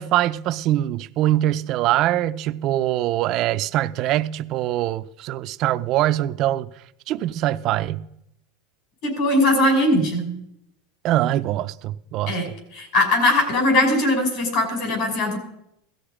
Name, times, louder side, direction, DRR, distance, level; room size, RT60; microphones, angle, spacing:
voice 1, 0.0-6.7 7.1-8.1 11.0-12.4, right 14 dB, 40° right, 0.6 m, -23 dB
voice 2, 9.0-10.4 12.3-12.5 12.7-15.4, left 1 dB, 55° left, 5.9 m, -20 dB
17.0 x 13.5 x 5.0 m
supercardioid pair, 150°, 0 cm